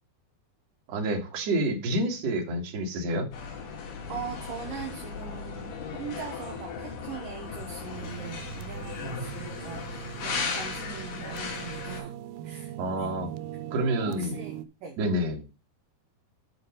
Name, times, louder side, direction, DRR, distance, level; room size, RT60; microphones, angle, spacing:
voice 1, 0.9-3.3 12.8-13.3 13.7-14.4 15.0-15.4, right 1 dB, 50° right, 1 dB, 2.6 m, -28 dB
sound 1, 3.3-12.0, left 5 dB, 90° left, 4.6 m, -36 dB
voice 2, 4.1-12.1 12.4-13.1 14.0-15.0, right 7 dB, 65° right, 2 dB, 2.5 m, -41 dB
sound 2, 7.9-14.7, right 12 dB, 85° right, 2.7 m, -40 dB
10.5 x 4.5 x 5.2 m, 0.29 s
omnidirectional pair, 4.9 m